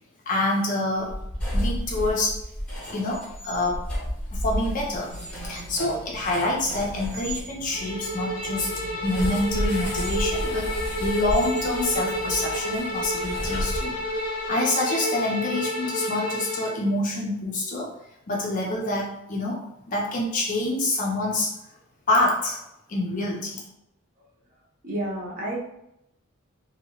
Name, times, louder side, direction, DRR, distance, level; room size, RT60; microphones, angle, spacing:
voice 1, 0.3-1.1 1.5-2.4 2.9-3.9 4.3-8.7 9.0-13.9 14.5-17.9 18.3-19.6 19.9-21.5 22.1-22.6 22.9-23.6, left 2 dB, 35° left, -1 dB, 0.4 m, -26 dB
sound 1, 1.0-7.4 9.0-14.2, equal, 5° left, 0.9 m, -32 dB
sound 2, 5.1-12.5, right 1 dB, 85° right, 0.6 m, -43 dB
Bowed string instrument, 7.7-16.8, equal, 85° left, 0.5 m, -30 dB
voice 2, 24.8-25.7, right 1 dB, 40° right, -5 dB, 0.8 m, -30 dB
2.8 x 2.7 x 2.8 m, 0.83 s
head